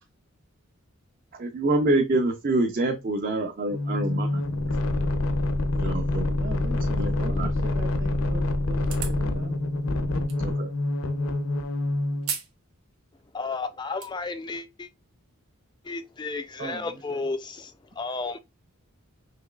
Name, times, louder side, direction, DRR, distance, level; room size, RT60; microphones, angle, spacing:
voice 1, 1.4-4.4 5.7-6.3 7.0-7.5 10.4-10.7, right 2 dB, 40° right, 0.5 m, -26 dB
sound 1, 3.7-12.3, left 1 dB, 75° left, 0.6 m, -26 dB
voice 2, 6.3-9.6 10.3-10.7 16.6-17.3, right 2 dB, 60° right, 1.9 m, -40 dB
sound 2, 8.8-9.2 10.3-10.4 12.2-12.5 12.9-13.0 13.7-14.1, right 7 dB, 85° right, 1.4 m, -33 dB
voice 3, 13.3-14.9 15.8-18.4, left 3 dB, 20° left, 0.3 m, -33 dB
5.7 x 3.1 x 2.3 m
head